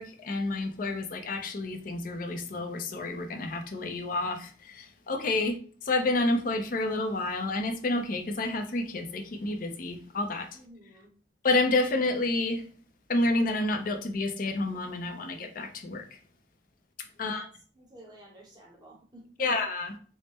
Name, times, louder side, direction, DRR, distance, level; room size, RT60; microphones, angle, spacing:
voice 1, 0.0-10.5 11.4-12.7 13.1-16.2 17.0-17.4 19.4-20.0, left 2 dB, 50° left, 5 dB, 0.5 m, -29 dB
voice 2, 10.5-11.1 17.1-17.5 17.7-19.5, right 1 dB, 25° right, -2 dB, 1.0 m, -51 dB
3.5 x 2.0 x 4.0 m, 0.42 s
head